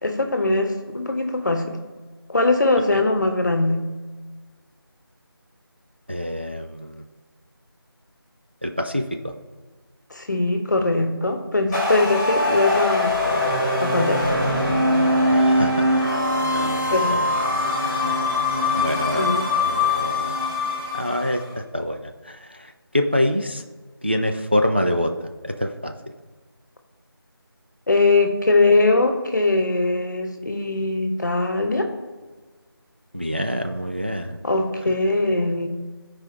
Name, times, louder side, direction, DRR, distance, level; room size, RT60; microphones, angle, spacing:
voice 1, 0.0-1.8 2.3-3.9 10.1-13.2 13.8-14.3 16.9-17.2 19.1-19.4 27.9-31.9 34.4-35.7, left 2 dB, 50° left, 5 dB, 1.1 m, -21 dB
voice 2, 6.1-7.0 8.6-9.3 15.3-16.0 16.5-17.2 18.7-19.3 19.6-20.3 20.9-21.4 21.7-23.6 24.0-25.1 25.4-25.9 33.1-34.4 34.9-35.0, left 1 dB, 25° right, 5 dB, 0.3 m, -26 dB
sound 1, 11.7-21.4, left 1 dB, 10° left, 2.5 m, -22 dB
14.0 x 4.9 x 2.9 m, 1.4 s
figure-of-eight pair, 170°, 13 cm